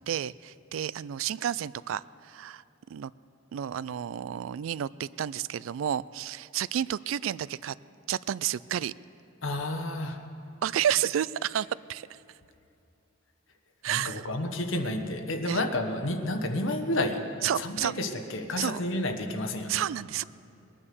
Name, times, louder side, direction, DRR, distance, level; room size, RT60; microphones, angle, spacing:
voice 1, 0.1-2.6 2.9-3.1 3.5-7.7 8.1-8.9 10.6-12.2 13.8-14.2 15.5-15.6 17.4-17.9 18.6-18.8 19.7-20.2, right 10 dB, 80° right, 20 dB, 0.3 m, -31 dB
voice 2, 9.4-10.2 13.9-17.3 17.6-19.8, left 1 dB, 75° left, 6 dB, 1.2 m, -30 dB
20.0 x 9.9 x 6.9 m, 2.7 s
head